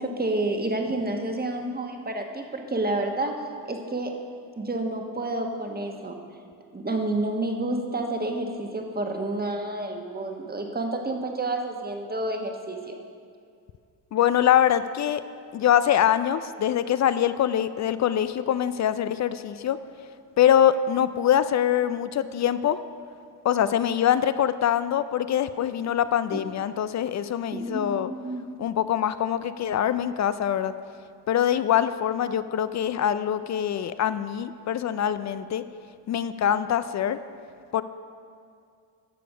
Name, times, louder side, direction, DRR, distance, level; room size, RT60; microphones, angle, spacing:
voice 1, 0.0-3.3 3.6-4.2 4.6-6.2 6.7-13.0 26.3-26.4 27.5-28.4, right 2 dB, 20° right, 3 dB, 1.3 m, -29 dB
voice 2, 14.1-15.2 15.5-19.8 20.4-22.8 23.4-28.1 28.6-30.7 31.3-35.6 36.1-37.2 37.7-37.8, left 10 dB, 40° left, 13 dB, 0.4 m, -24 dB
12.0 x 6.8 x 4.9 m, 2.3 s
supercardioid pair, 65°, 49 cm